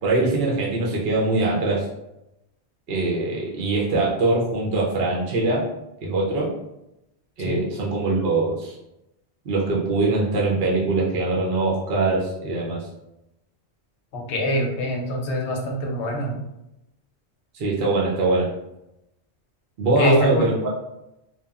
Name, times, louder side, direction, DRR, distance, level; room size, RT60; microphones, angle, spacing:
voice 1, 0.0-1.9 2.9-5.6 6.0-6.5 7.4-8.8 9.5-12.9 17.5-18.5 19.8-20.7, right 2 dB, 60° right, -3 dB, 0.8 m, -22 dB
voice 2, 14.1-16.4 20.0-20.5, equal, 80° left, 1 dB, 0.9 m, -24 dB
2.9 x 2.2 x 2.3 m, 0.88 s
omnidirectional pair, 1.1 m